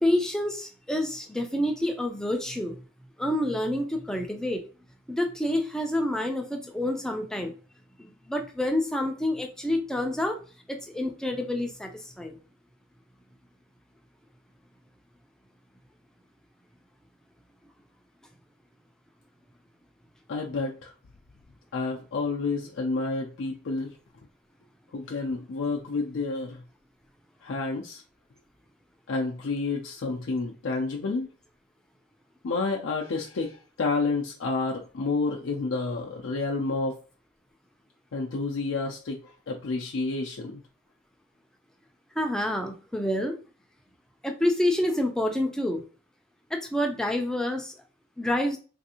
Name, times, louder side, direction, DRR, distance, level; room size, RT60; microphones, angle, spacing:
voice 1, 0.0-2.8 3.2-4.6 5.1-7.5 8.0-10.4 10.7-12.4 42.2-43.4 44.2-45.8 46.5-47.7 48.2-48.6, left 1 dB, 5° left, 3 dB, 0.4 m, -28 dB
voice 2, 20.3-20.9 21.7-24.0 24.9-26.6 27.4-28.0 29.1-31.3 32.4-37.0 38.1-40.6, left 3 dB, 65° left, -1 dB, 0.4 m, -30 dB
3.3 x 2.6 x 2.7 m, 0.37 s
head